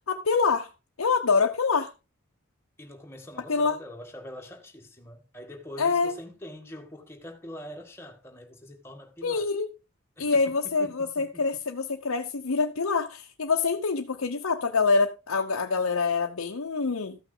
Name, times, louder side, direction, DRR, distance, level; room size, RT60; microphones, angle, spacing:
voice 1, 0.1-0.7 1.0-1.9 3.5-3.7 5.8-6.1 9.2-9.7 10.2-17.2, left 4 dB, 90° left, 0.8 m, -25 dB
voice 2, 2.8-9.5 10.2-10.4 10.8-11.4, equal, 10° left, 1.8 m, -44 dB
14.0 x 6.0 x 3.8 m
head